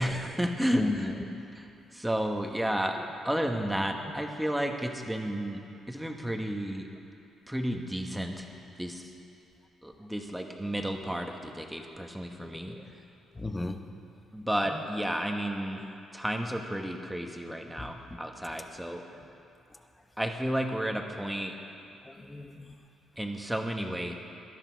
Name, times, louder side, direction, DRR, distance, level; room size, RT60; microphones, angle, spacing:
voice 1, 0.0-1.1 1.9-3.0 3.2-5.6 5.9-6.9 7.5-8.5 8.8-9.1 9.8-12.7 14.3-15.8 16.1-19.0 20.2-21.5 23.2-24.1, equal, 5° right, 3 dB, 1.3 m, -32 dB
voice 2, 0.7-1.5 3.7-3.8 12.4-12.8 13.3-13.8 14.7-14.8 17.8-18.2 22.0-22.7, left 2 dB, 15° left, 7 dB, 1.0 m, -36 dB
18.0 x 12.5 x 4.7 m, 2.7 s
cardioid pair, 90°, 0 cm